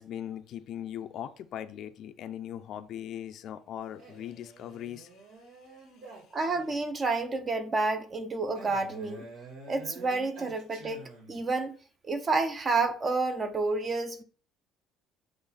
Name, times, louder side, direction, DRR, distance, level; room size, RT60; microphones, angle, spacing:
voice 1, 0.0-5.2 6.0-6.1, left 10 dB, 60° left, 0.5 m, -40 dB
Male speech man speaking, 4.0-7.0 8.6-11.5, right 3 dB, 80° right, 2.8 m, -49 dB
voice 2, 6.3-9.3 9.7-11.8 12.0-14.2, right 3 dB, 30° right, 0.9 m, -29 dB
7.8 x 3.2 x 4.0 m
cardioid pair, 105°, 0 cm